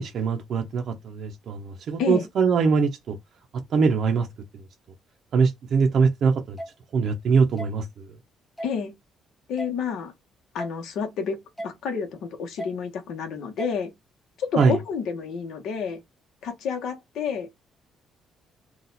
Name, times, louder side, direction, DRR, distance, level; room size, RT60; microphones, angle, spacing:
voice 1, 0.0-3.2 3.5-4.3 5.3-6.6 6.9-8.1 14.6-14.8, right 5 dB, 50° right, 0.6 m, -22 dB
sound 1, 6.6-6.7 7.6-7.7 8.6-8.7 9.6-9.7 10.6-10.8 11.6-11.7 12.6-12.8 13.6-13.7 14.6-14.8, equal, 10° left, 0.8 m, -34 dB
voice 2, 8.6-8.9 9.5-10.1 10.5-11.4 11.6-13.9 14.4-16.0 16.4-17.5, left 6 dB, 70° left, 1.0 m, -29 dB
4.0 x 2.4 x 4.0 m
cardioid pair, 160°, 0 cm